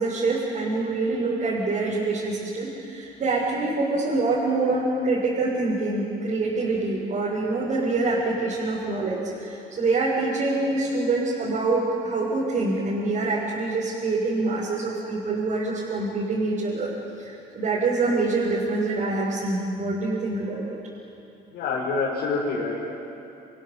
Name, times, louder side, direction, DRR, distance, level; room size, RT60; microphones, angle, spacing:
voice 1, 0.0-16.9 17.2-20.8, right 3 dB, 50° right, -6 dB, 6.7 m, -25 dB
voice 2, 21.5-22.9, left 4 dB, 80° left, -5 dB, 5.5 m, -27 dB
29.0 x 27.5 x 7.5 m, 2.8 s
cardioid pair, 110°, 17 cm